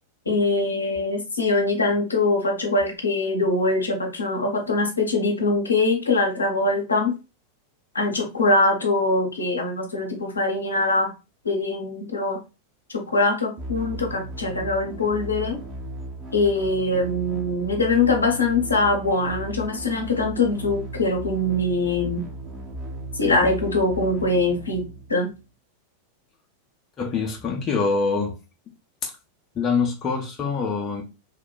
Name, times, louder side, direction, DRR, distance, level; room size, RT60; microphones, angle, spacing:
voice 1, 0.3-7.1 7.9-11.1 11.4-12.4 12.9-15.6 16.3-22.2 23.1-24.8 25.1-25.3, left 2 dB, 80° left, 0.7 m, -23 dB
sound 1, 13.6-25.5, right 2 dB, 25° right, 0.8 m, -36 dB
voice 2, 27.0-28.4 29.0-29.1 29.5-31.0, left 4 dB, 30° left, 0.5 m, -24 dB
2.9 x 2.1 x 2.2 m
figure-of-eight pair, 90°, 0 cm